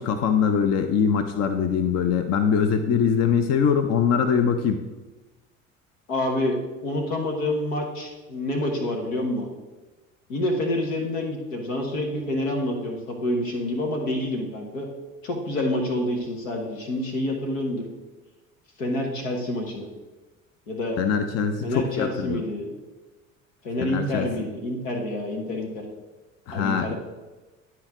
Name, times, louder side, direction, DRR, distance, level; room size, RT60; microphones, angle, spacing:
voice 1, 0.0-4.8 21.0-22.4 23.8-24.3 26.5-26.9, left 7 dB, 40° left, 8 dB, 0.7 m, -23 dB
voice 2, 6.1-6.6 6.8-9.5 10.3-14.9 15.2-17.8 18.8-19.9 20.7-21.0 21.6-22.6 23.6-25.8 26.5-26.9, left 1 dB, 80° left, 1 dB, 1.5 m, -27 dB
10.5 x 4.6 x 3.7 m, 1.2 s
hypercardioid pair, 60°, 39 cm